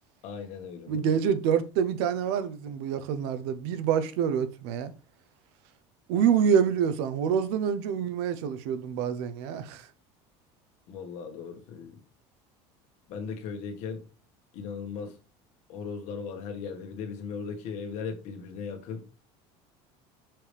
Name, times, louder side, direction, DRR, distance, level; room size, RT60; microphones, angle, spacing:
voice 1, 0.2-1.2 10.9-12.0 13.1-14.0 14.5-15.1 15.7-19.0, left 5 dB, 60° left, 1.5 m, -37 dB
voice 2, 0.9-4.9 6.1-9.8, right 8 dB, 80° right, 0.8 m, -26 dB
6.0 x 4.9 x 3.4 m
cardioid pair, 145°, 14 cm